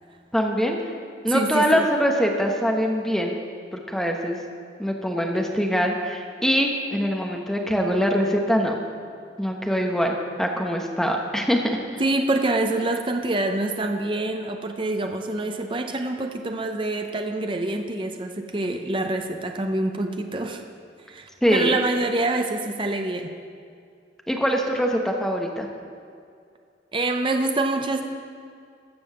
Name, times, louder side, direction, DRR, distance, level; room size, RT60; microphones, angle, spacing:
voice 1, 0.3-0.9 1.2-3.3 3.7-4.4 4.8-8.8 9.4-11.8 21.4-21.7 24.3-25.7, equal, ahead, 1 dB, 1.0 m, -23 dB
voice 2, 1.3-1.9 12.0-20.6 21.1-23.3 26.9-28.0, right 2 dB, 30° right, 5 dB, 0.6 m, -26 dB
15.0 x 5.5 x 6.7 m, 2.3 s
head